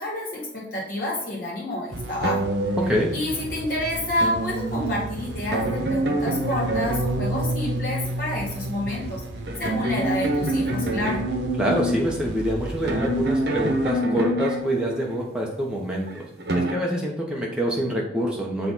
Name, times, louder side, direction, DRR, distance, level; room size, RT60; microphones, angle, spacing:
voice 1, 0.0-2.4 3.1-9.2 9.6-11.2, left 1 dB, 50° left, -4 dB, 2.2 m, -29 dB
sound 1, 1.9-15.2, right 2 dB, 85° right, 0.7 m, -37 dB
sound 2, 2.2-3.5 4.2-15.3 16.1-16.7, right 1 dB, 65° right, 1.0 m, -27 dB
voice 2, 2.8-3.1 11.6-16.3 16.5-18.7, equal, 5° right, -2 dB, 1.1 m, -26 dB
6.8 x 3.4 x 4.1 m, 0.73 s
head